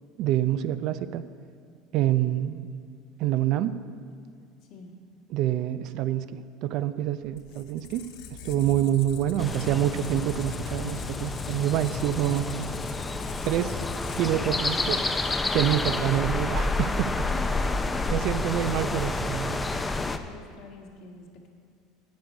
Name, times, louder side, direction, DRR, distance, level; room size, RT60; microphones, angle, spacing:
voice 1, 0.2-1.2 1.9-2.7 3.2-3.7 5.3-8.0 8.4-12.5 13.5-13.8 14.2-15.0 15.5-17.3 18.1-19.8, right 12 dB, 60° right, 13 dB, 0.4 m, -27 dB
Squeak, 7.3-15.0, left 6 dB, 75° left, 0.9 m, -40 dB
sound 1, 9.4-20.2, left 2 dB, 15° left, 0.5 m, -29 dB
voice 2, 17.3-18.3 20.0-21.5, left 3 dB, 55° left, 1 dB, 1.6 m, -45 dB
10.5 x 8.3 x 5.3 m, 2.2 s
supercardioid pair, 125°, 0 cm